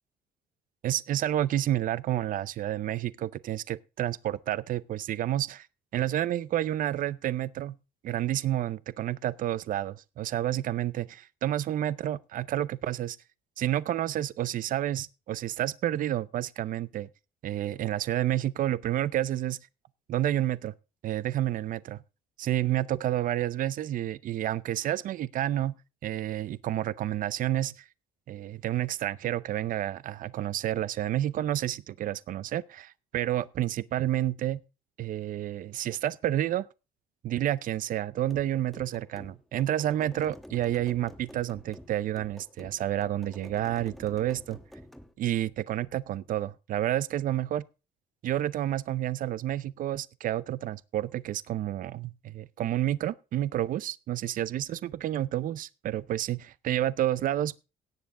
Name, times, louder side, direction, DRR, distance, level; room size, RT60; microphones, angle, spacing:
voice 1, 0.8-5.7 5.9-7.8 8.0-13.2 13.6-17.1 17.4-19.6 20.1-20.7 21.0-22.0 22.4-25.7 26.0-27.9 28.3-34.6 35.0-36.6 37.2-44.6 45.2-47.6 48.2-57.7, right 12 dB, 55° right, 0.6 m, -30 dB
sound 1, 38.3-45.1, equal, ahead, 1.1 m, -49 dB
17.5 x 7.1 x 3.7 m
cardioid pair, 110°, 17 cm